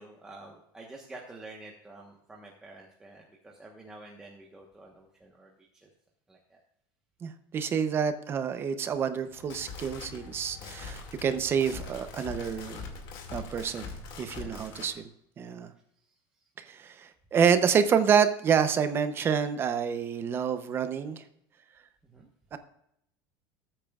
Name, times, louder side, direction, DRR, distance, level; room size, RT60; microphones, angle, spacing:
voice 1, 0.0-5.5 5.8-5.9 6.3-6.6 10.5-10.8 13.7-13.9 14.4-14.9 22.1-22.3, right 2 dB, 5° right, -2 dB, 1.1 m, -49 dB
voice 2, 7.2-12.8 13.3-13.8 14.2-15.0 15.4-15.7 17.3-21.2 22.5-22.6, right 7 dB, 25° right, 10 dB, 0.6 m, -27 dB
sound 1, 9.3-14.9, left 4 dB, 45° left, 2.1 m, -43 dB
19.0 x 8.8 x 2.4 m, 0.76 s
cardioid pair, 175°, 10 cm